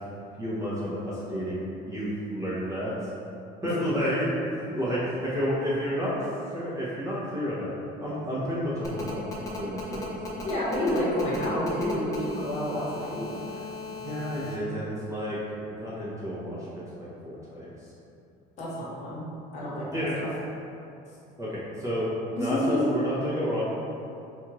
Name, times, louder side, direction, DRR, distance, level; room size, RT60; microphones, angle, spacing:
voice 1, 0.4-2.9 3.6-4.3 4.6-6.1 6.5-7.7 8.0-10.3 13.5-13.6 14.0-15.4 15.8-16.7 17.2-17.9 19.9-20.1 21.4-23.7, equal, 20° right, -9 dB, 0.7 m, -30 dB
Telephone, 8.8-14.5, left 3 dB, 20° left, 0.4 m, -37 dB
voice 2, 10.4-13.4 18.6-19.2 19.5-20.3 22.3-22.8, left 1 dB, 45° left, -7 dB, 0.9 m, -29 dB
4.4 x 2.4 x 2.9 m, 2.7 s
cardioid pair, 175°, 17 cm